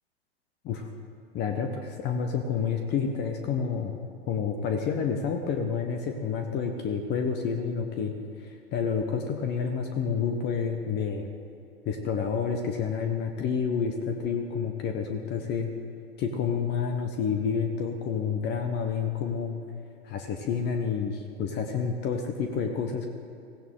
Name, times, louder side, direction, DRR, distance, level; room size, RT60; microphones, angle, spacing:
voice 1, 1.3-3.9 4.3-8.1 8.4-11.3 11.8-15.7 16.2-19.6 20.0-23.1, left 6 dB, 30° left, 5 dB, 1.1 m, -29 dB
16.5 x 16.0 x 3.8 m, 2.6 s
hypercardioid pair, 105°, 32 cm